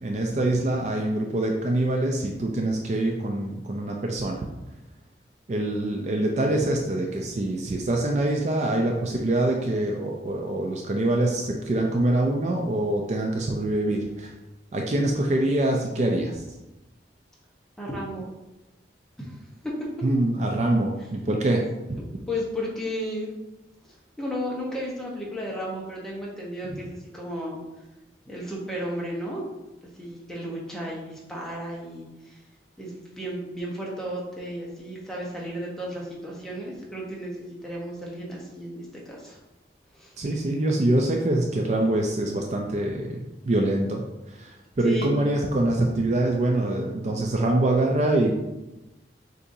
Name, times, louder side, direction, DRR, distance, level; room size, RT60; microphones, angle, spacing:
voice 1, 0.0-4.4 5.5-14.3 14.7-16.4 20.0-21.6 21.9-22.0 40.2-43.2 43.5-44.0 44.4-44.5 44.8-48.3, right 1 dB, 40° right, 1 dB, 0.4 m, -24 dB
voice 2, 17.8-18.3 19.2-19.7 21.0-21.7 22.3-23.3 24.2-27.6 28.2-29.4 30.0-32.4 32.8-39.4 39.9-40.1 44.8-45.1, equal, 5° left, -4 dB, 0.9 m, -34 dB
6.6 x 2.6 x 2.6 m, 0.99 s
head